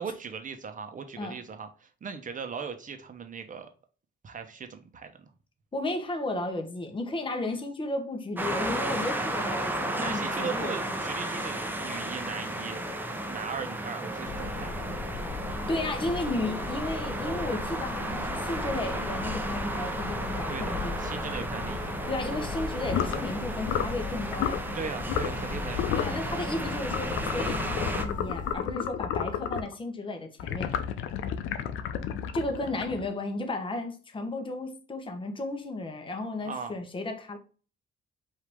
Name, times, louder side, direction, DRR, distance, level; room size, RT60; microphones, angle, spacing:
voice 1, 0.0-3.7 4.2-5.1 9.9-12.8 13.3-14.7 20.5-21.9 24.7-25.8 36.4-36.7, right 6 dB, 40° right, 0.9 m, -38 dB
voice 2, 5.7-11.0 15.7-20.9 22.1-24.6 26.0-30.8 32.3-37.4, left 2 dB, 25° left, 1.1 m, -34 dB
sound 1, 8.4-28.1, right 1 dB, 10° right, 0.8 m, -33 dB
sound 2, 14.2-28.6, left 4 dB, 40° left, 0.6 m, -38 dB
sound 3, 22.9-23.2 23.7-24.0 24.3-24.6 25.1-25.5 25.7-26.2 26.9-29.7 30.4-33.2, left 9 dB, 90° left, 0.5 m, -31 dB
5.0 x 2.8 x 3.5 m
cardioid pair, 90°, 20 cm